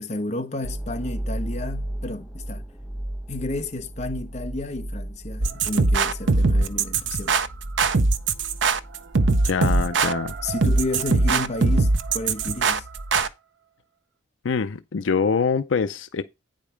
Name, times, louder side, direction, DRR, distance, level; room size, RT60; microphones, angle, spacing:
voice 1, 0.0-2.7 3.3-7.4 10.4-12.9, left 2 dB, 35° left, 1.1 m, -31 dB
sound 1, 0.6-11.6, right 1 dB, 5° right, 1.1 m, -36 dB
sound 2, 5.4-13.3, right 3 dB, 70° right, 0.7 m, -21 dB
voice 2, 9.4-10.4 14.4-16.2, left 5 dB, 75° left, 0.5 m, -24 dB
9.3 x 5.2 x 5.0 m
head